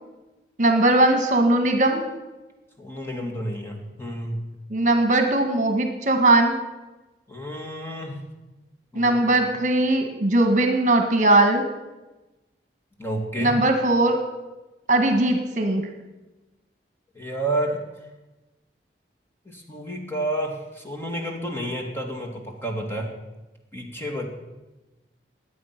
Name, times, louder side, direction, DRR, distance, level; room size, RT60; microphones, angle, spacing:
voice 1, 0.6-2.0 4.7-6.5 9.0-11.6 13.4-14.2 14.9-15.9, right 2 dB, 45° right, 5 dB, 1.6 m, -19 dB
voice 2, 2.8-4.4 7.3-8.2 8.9-9.2 13.0-13.5 17.1-17.8 19.5-23.1 23.7-24.3, right 1 dB, 15° left, 1 dB, 2.2 m, -30 dB
21.5 x 8.6 x 6.0 m, 1.1 s
head